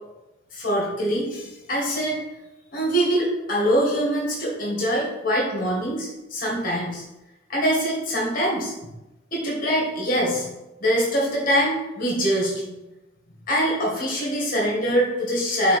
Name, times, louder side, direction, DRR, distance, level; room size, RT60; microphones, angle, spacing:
voice 1, 0.5-2.2 2.7-7.0 7.5-8.7 9.3-10.5 10.8-12.8 13.5-15.8, equal, 40° left, -4 dB, 2.0 m, -23 dB
6.1 x 3.9 x 4.3 m, 0.99 s
head